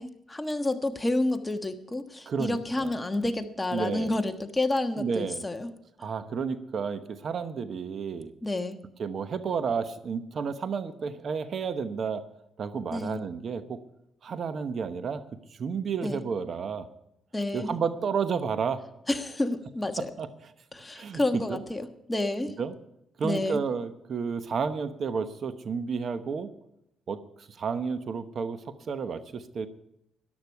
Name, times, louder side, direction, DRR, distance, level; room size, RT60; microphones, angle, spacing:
voice 1, 0.0-5.7 8.4-8.8 12.9-13.2 16.0-16.2 17.3-17.8 19.1-20.1 20.7-22.5 23.2-23.6, left 2 dB, 15° left, 6 dB, 1.4 m, -29 dB
voice 2, 2.3-2.9 3.7-4.1 5.0-5.4 6.0-8.3 9.0-12.2 12.6-13.8 14.2-15.2 15.5-16.9 17.5-18.8 20.2-20.3 20.9-21.6 22.6-22.7 23.2-26.5 27.1-29.7, right 6 dB, 55° right, 10 dB, 1.1 m, -31 dB
13.5 x 11.5 x 4.7 m, 0.81 s
cardioid pair, 90°, 0 cm